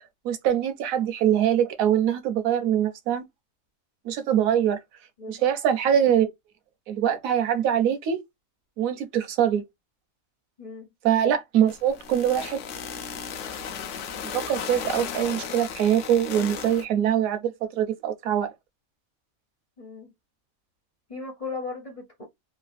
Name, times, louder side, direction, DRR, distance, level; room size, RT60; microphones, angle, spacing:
voice 1, 0.2-3.3 4.0-4.8 5.3-6.3 6.9-8.2 8.8-9.6 11.0-12.6 14.3-18.5, right 9 dB, 80° right, 1.0 m, -23 dB
voice 2, 5.2-5.6 10.6-10.9 19.8-20.1 21.1-22.3, left 4 dB, 35° left, 0.6 m, -37 dB
sound 1, 11.7-16.9, left 7 dB, 70° left, 0.9 m, -35 dB
3.2 x 2.2 x 2.4 m
omnidirectional pair, 1.4 m